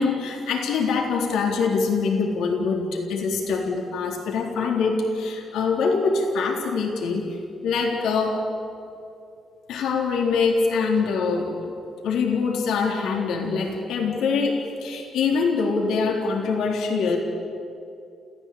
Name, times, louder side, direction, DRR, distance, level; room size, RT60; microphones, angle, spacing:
voice 1, 0.0-7.4 7.6-8.4 9.7-11.7 12.0-17.2, left 4 dB, 80° left, 1 dB, 3.6 m, -24 dB
27.5 x 15.0 x 8.7 m, 2.5 s
cardioid pair, 90°, 0 cm